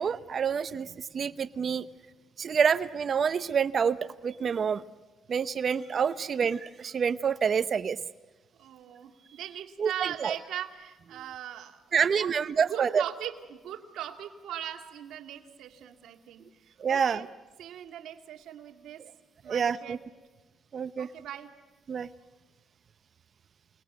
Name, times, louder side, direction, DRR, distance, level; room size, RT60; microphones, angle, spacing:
voice 1, 0.0-1.9 2.4-4.0 4.2-4.8 5.3-8.0 9.8-10.3 11.9-13.0 16.8-17.3 19.5-20.0 20.7-21.1 21.9-22.1, right 6 dB, 50° right, 13 dB, 0.8 m, -27 dB
voice 2, 8.6-12.3 12.7-17.3 17.6-19.0 19.4-20.0 21.0-21.5, right 10 dB, 80° right, 4 dB, 2.3 m, -40 dB
28.5 x 20.5 x 9.4 m, 1.2 s
cardioid pair, 90°, 0 cm